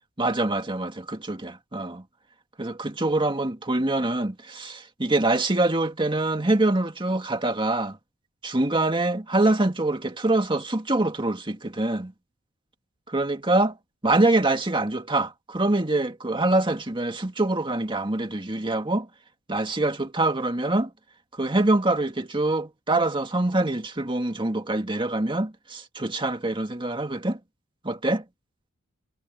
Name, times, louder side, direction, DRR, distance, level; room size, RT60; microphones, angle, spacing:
voice 1, 0.2-2.0 2.6-8.0 8.4-12.1 13.1-13.8 14.0-19.1 19.5-20.9 21.3-27.4 27.8-28.2, right 2 dB, 25° right, 2.1 m, -24 dB
head